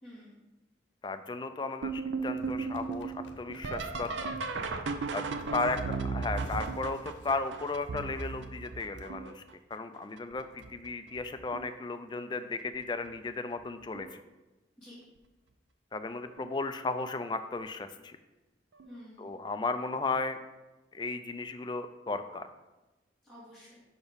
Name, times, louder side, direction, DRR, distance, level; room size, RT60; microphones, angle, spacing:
voice 1, 0.0-0.4 5.4-5.9 14.8-15.0 18.9-19.4 23.2-23.8, equal, 10° right, -13 dB, 2.1 m, -51 dB
voice 2, 1.0-4.1 5.1-5.2 5.5-9.4 9.7-14.2 15.9-18.2 19.2-20.4 20.9-22.5, left 3 dB, 25° left, 9 dB, 0.3 m, -35 dB
sound 1, 1.8-9.5 10.2-10.7 11.1-11.8 13.1-13.2 13.9-14.2 16.4-16.5 18.8-18.9, right 4 dB, 80° right, 0.5 m, -36 dB
sound 2, 2.4-8.6 9.0-9.1 9.6-9.8 10.2-10.3 10.5-10.6 11.2-11.4 11.8-11.9 12.1-12.2 12.5-13.4 14.0-14.1, left 2 dB, 75° left, 0.7 m, -53 dB
5.8 x 4.4 x 5.1 m, 1.1 s
head